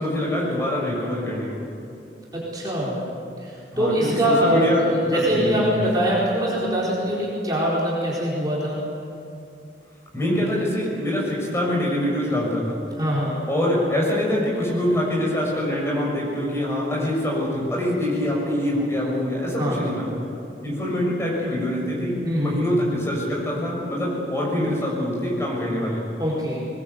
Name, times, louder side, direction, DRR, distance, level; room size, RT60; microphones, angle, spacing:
voice 1, 0.0-1.6 3.7-4.8 5.1-5.5 10.1-12.8 13.5-20.1 20.6-26.0, left 1 dB, 15° left, -4 dB, 6.7 m, -24 dB
voice 2, 2.3-3.0 3.4-8.8 13.0-13.4 19.6-19.9 22.2-22.7 26.2-26.7, equal, 20° right, -6 dB, 4.3 m, -23 dB
21.5 x 21.0 x 8.2 m, 2.5 s
head